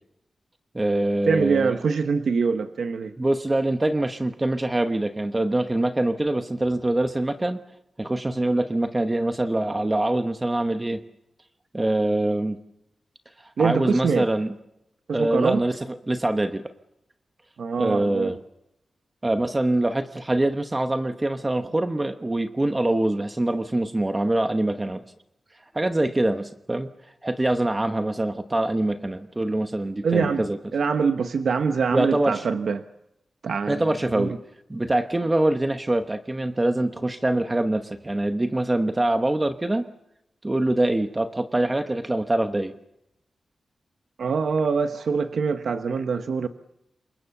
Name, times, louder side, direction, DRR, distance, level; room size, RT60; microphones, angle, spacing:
voice 1, 0.7-1.8 3.2-7.6 8.0-11.0 11.7-12.6 13.4-14.5 15.1-15.7 16.1-16.6 17.8-18.4 19.2-25.0 25.7-26.9 27.2-30.6 31.9-32.4 33.7-34.3 34.7-39.9 40.4-42.7, right 1 dB, 15° right, 7 dB, 1.0 m, -24 dB
voice 2, 1.3-3.1 13.6-14.3 15.1-15.6 17.6-18.4 30.0-30.4 30.7-32.8 33.4-33.8 34.1-34.4 44.2-46.5, right 5 dB, 70° right, 8 dB, 1.1 m, -24 dB
28.0 x 24.5 x 7.1 m, 0.85 s
wide cardioid pair, 170°, 0 cm